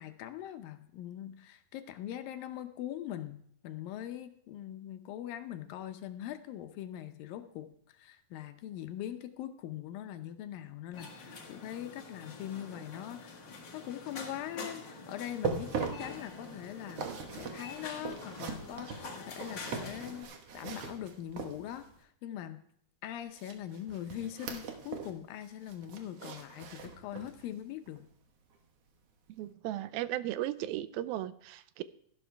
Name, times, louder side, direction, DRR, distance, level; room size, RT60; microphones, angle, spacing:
voice 1, 0.0-13.4 13.7-17.1 17.3-22.6 23.0-28.1, left 11 dB, 75° left, 9 dB, 2.3 m, -42 dB
sound 1, 10.9-20.2, left 3 dB, 45° left, 1.6 m, -46 dB
sound 2, 15.2-22.0 23.4-25.2 25.5-27.4 27.9-28.0 28.5-28.6, right 6 dB, 60° right, 1.7 m, -41 dB
voice 2, 29.4-31.8, right 14 dB, 80° right, 14 dB, 2.3 m, -36 dB
13.5 x 12.0 x 3.4 m, 0.67 s
omnidirectional pair, 4.4 m